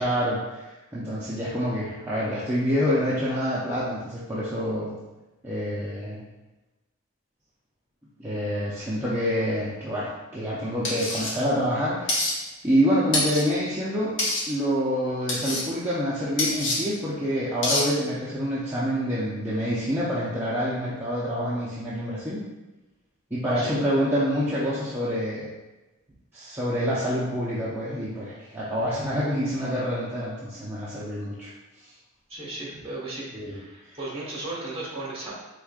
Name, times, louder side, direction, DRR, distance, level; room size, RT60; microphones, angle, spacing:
voice 1, 0.0-4.9 5.4-6.2 8.2-14.2 14.5-22.4 23.3-25.5 26.3-31.5 33.3-33.6 33.9-34.0, equal, 10° right, -9 dB, 0.6 m, -27 dB
sound 1, 10.8-11.3 12.1-12.3 13.1-13.4 14.2-14.4 15.3-15.6 16.4-16.8 17.6-17.8, left 2 dB, 60° left, 1.1 m, -25 dB
voice 2, 23.4-23.8 32.3-35.3, right 2 dB, 30° right, -5 dB, 1.3 m, -35 dB
4.9 x 3.6 x 2.4 m, 1.1 s
head